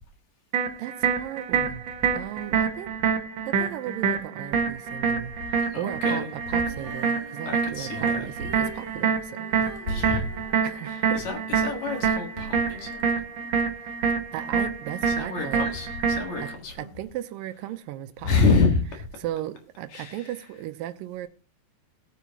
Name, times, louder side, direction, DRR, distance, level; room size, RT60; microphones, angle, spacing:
sound 1, 0.5-16.5, right 6 dB, 60° right, 1.3 m, -27 dB
voice 1, 0.8-1.8 2.1-2.9 3.5-9.8 10.6-11.2 14.3-15.7 16.4-16.5 16.8-18.6 19.2-21.3, right 13 dB, 80° right, 10 dB, 2.3 m, -36 dB
voice 2, 5.7-6.3 7.4-8.4 9.9-10.4 10.9-13.0 15.1-16.9 18.2-18.8 19.9-20.4, left 4 dB, 55° left, 3 dB, 2.9 m, -27 dB
Female singing, 6.6-13.6 14.2-14.3, right 2 dB, 40° right, 3.2 m, -46 dB
17.5 x 8.3 x 2.9 m, 0.35 s
omnidirectional pair, 4.1 m